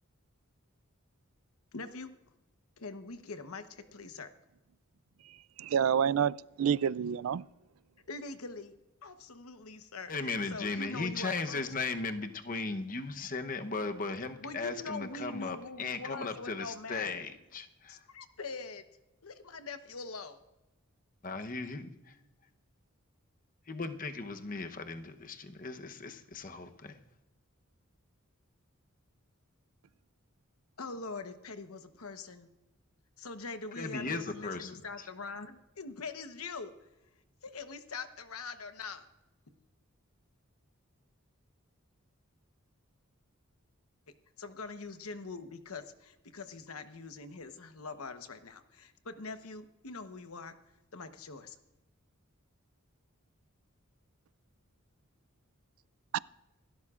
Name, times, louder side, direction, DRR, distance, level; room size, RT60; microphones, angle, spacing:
voice 1, 1.7-2.1 2.8-4.3 8.1-8.7 9.0-10.1 10.5-11.6 14.4-17.2 17.9-18.8 19.2-20.4 30.8-32.5 33.2-36.7 37.4-39.1 44.4-50.5 50.9-51.6, left 3 dB, 90° left, 1.0 m, -43 dB
voice 2, 5.6-7.5 56.1-56.2, right 8 dB, 75° right, 0.3 m, -28 dB
voice 3, 10.1-18.0 21.2-22.2 23.7-27.0 33.8-35.1, left 3 dB, 40° left, 0.9 m, -37 dB
27.0 x 12.5 x 2.5 m
head